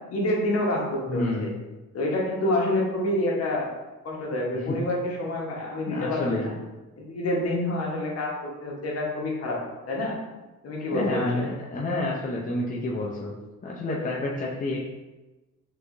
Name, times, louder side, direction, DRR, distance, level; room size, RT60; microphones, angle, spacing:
voice 1, 0.1-1.5 1.9-3.7 4.0-6.5 7.0-9.6 9.9-10.2 10.6-11.5, left 1 dB, 55° left, -3 dB, 1.2 m, -27 dB
voice 2, 1.1-1.5 4.6-4.8 5.9-6.5 10.9-13.3 13.6-14.8, left 2 dB, 25° left, -3 dB, 0.6 m, -29 dB
4.5 x 2.9 x 2.6 m, 1.1 s
cardioid pair, 90°, 30 cm